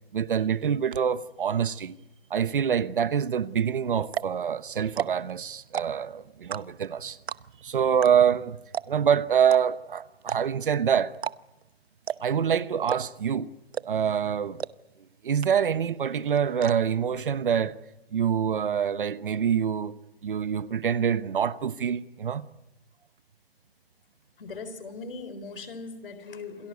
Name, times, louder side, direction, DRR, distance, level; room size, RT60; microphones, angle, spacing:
voice 1, 0.1-2.0 2.3-7.2 7.6-8.6 8.9-11.1 12.2-13.5 13.8-14.6 15.2-17.8 18.1-22.4, right 8 dB, 55° right, 1.1 m, -25 dB
sound 1, 3.6-3.7 4.0-4.4 4.9-5.3 5.6-6.1 6.5-6.9 7.3-7.6 8.0-8.1 8.4-8.5 8.7-9.1 9.5-9.6 10.2-10.7 11.1-11.4 11.6-11.7 12.1-12.4 12.9-13.3 13.7-14.1 14.6-14.7 15.0-15.1 15.4-15.8 16.1-16.7, right 8 dB, 85° right, 0.9 m, -32 dB
voice 2, 24.4-26.7, left 4 dB, 60° left, 3.8 m, -39 dB
28.0 x 19.0 x 8.2 m
hypercardioid pair, 175°, 31 cm